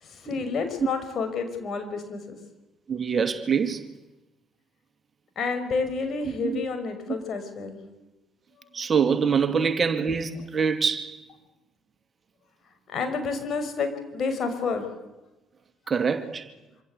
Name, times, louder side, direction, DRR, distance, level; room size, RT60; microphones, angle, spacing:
voice 1, 0.0-2.4 5.4-7.8 12.9-14.9, left 4 dB, 45° left, 6.2 m, -29 dB
voice 2, 2.9-3.8 6.4-6.6 8.7-11.2 15.9-16.5, right 6 dB, 35° right, 2.3 m, -25 dB
26.5 x 26.5 x 8.4 m
figure-of-eight pair, 45°, 0 cm